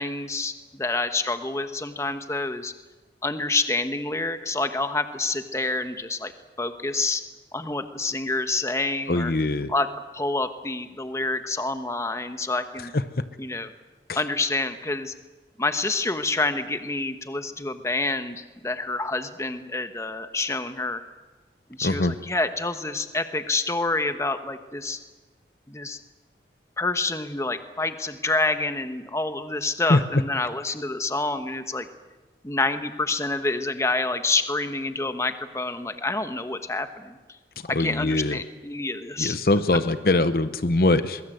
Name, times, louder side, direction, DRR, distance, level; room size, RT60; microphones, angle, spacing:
voice 1, 0.0-2.7 3.2-6.3 6.6-7.2 7.5-9.3 9.7-9.9 10.1-12.9 13.4-13.7 14.1-15.1 15.6-21.0 21.7-25.0 25.7-26.0 26.8-31.9 32.4-37.4 37.7-39.4, left 3 dB, 15° left, 9 dB, 1.2 m, -27 dB
voice 2, 9.1-9.7 12.9-13.2 14.1-14.2 21.8-22.2 29.9-30.0 37.7-38.4 39.2-41.2, left 2 dB, 55° left, 12 dB, 0.9 m, -22 dB
23.0 x 23.0 x 7.9 m, 1.2 s
head